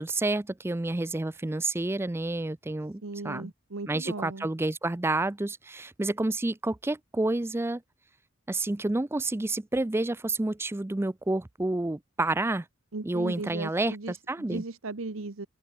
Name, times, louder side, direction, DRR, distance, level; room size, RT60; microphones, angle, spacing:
voice 1, 0.0-3.5 3.9-7.8 8.5-12.7 13.0-14.6, right 2 dB, 10° right, 0.4 m, -29 dB
voice 2, 3.0-4.5 12.9-15.5, right 3 dB, 75° right, 1.1 m, -37 dB
head